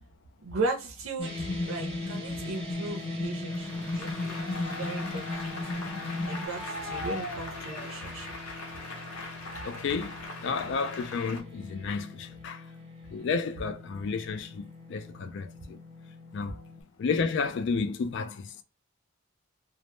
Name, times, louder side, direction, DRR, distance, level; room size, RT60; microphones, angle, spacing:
voice 1, 0.4-5.5 6.2-8.4 16.4-16.6, right 3 dB, 65° right, 0.5 m, -37 dB
sound 1, 1.2-6.5, left 2 dB, 15° left, 0.6 m, -34 dB
sound 2, 1.2-16.8, left 2 dB, 25° right, 0.7 m, -45 dB
Applause, 3.5-11.4, left 2 dB, 80° left, 0.8 m, -40 dB
voice 2, 9.6-12.6 13.1-15.8 16.3-16.6 17.0-18.5, left 5 dB, 55° left, 0.3 m, -32 dB
2.1 x 2.0 x 3.0 m
head